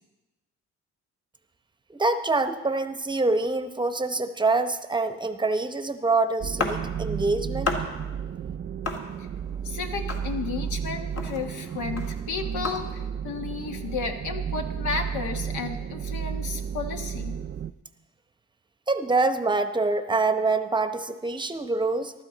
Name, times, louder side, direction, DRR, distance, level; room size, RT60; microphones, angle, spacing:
voice 1, 1.9-7.7 18.9-22.1, right 3 dB, 15° right, 9 dB, 0.8 m, -25 dB
sound 1, 6.4-17.7, right 8 dB, 35° right, 0.4 m, -33 dB
sound 2, 6.6-7.2 7.6-8.2 8.8-9.6 10.1-10.8 11.1-13.1, left 3 dB, 55° left, 2.0 m, -33 dB
voice 2, 9.6-17.4, left 5 dB, 75° left, 4 dB, 1.6 m, -33 dB
14.5 x 12.0 x 4.1 m, 1.1 s
cardioid pair, 90°, 30 cm